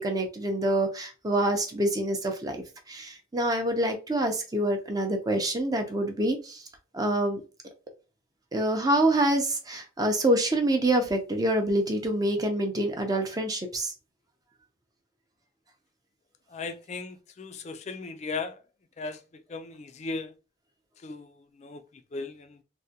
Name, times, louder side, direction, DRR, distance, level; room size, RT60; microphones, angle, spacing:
voice 1, 0.0-6.7 6.9-7.4 8.5-13.9, right 1 dB, 20° right, 0.5 m, -26 dB
voice 2, 16.5-18.6 19.0-20.3 21.0-22.6, left 3 dB, 35° left, 0.4 m, -37 dB
3.5 x 2.1 x 2.7 m
head